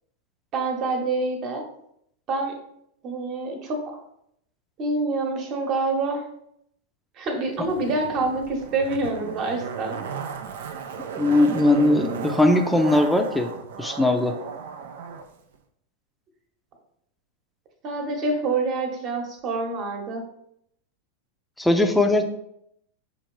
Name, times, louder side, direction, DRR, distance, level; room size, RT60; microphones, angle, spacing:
voice 1, 0.5-1.7 2.3-2.6 3.0-4.0 4.8-6.3 7.2-10.0 17.8-20.2, right 3 dB, 45° right, 3 dB, 1.1 m, -26 dB
Zipper (clothing), 7.6-15.3 15.5-15.6, right 6 dB, 75° right, 0.5 m, -35 dB
voice 2, 11.2-13.5 13.8-14.4 21.6-22.3, left 2 dB, 5° left, 6 dB, 0.5 m, -20 dB
5.7 x 2.5 x 3.1 m, 0.74 s
hypercardioid pair, 105°, 0 cm